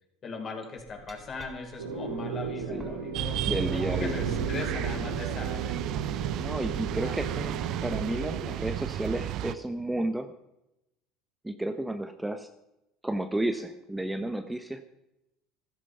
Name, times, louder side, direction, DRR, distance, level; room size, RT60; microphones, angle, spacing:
voice 1, 0.2-3.4 3.7-5.7 7.0-7.4, left 4 dB, 40° left, 2 dB, 5.2 m, -39 dB
Glass, 1.0-6.9, left 1 dB, 25° right, 3.8 m, -48 dB
sound 1, 1.8-8.6, right 4 dB, 90° right, 2.1 m, -37 dB
sound 2, 3.1-9.6, right 11 dB, 55° right, 0.8 m, -32 dB
voice 2, 3.5-4.2 6.3-7.6 7.8-10.3 11.4-12.5 13.0-14.8, right 1 dB, 10° right, 8 dB, 1.1 m, -32 dB
14.5 x 14.0 x 5.7 m, 0.90 s
hypercardioid pair, 70°, 0 cm